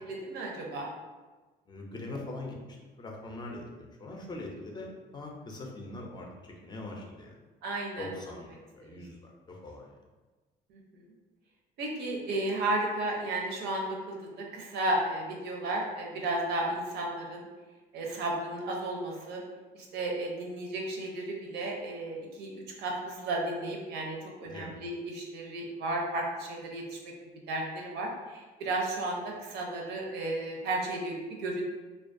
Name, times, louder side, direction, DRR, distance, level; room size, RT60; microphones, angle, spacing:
voice 1, 0.1-0.9 7.6-8.1 8.8-9.0 10.7-11.0 11.8-17.5 17.9-19.4 19.7-27.1 27.5-31.6, right 2 dB, 75° right, 0 dB, 0.6 m, -33 dB
voice 2, 1.7-7.3 8.0-9.9 24.4-24.7, left 2 dB, 25° left, -1 dB, 0.4 m, -42 dB
2.3 x 2.2 x 2.5 m, 1.3 s
cardioid pair, 110°, 17 cm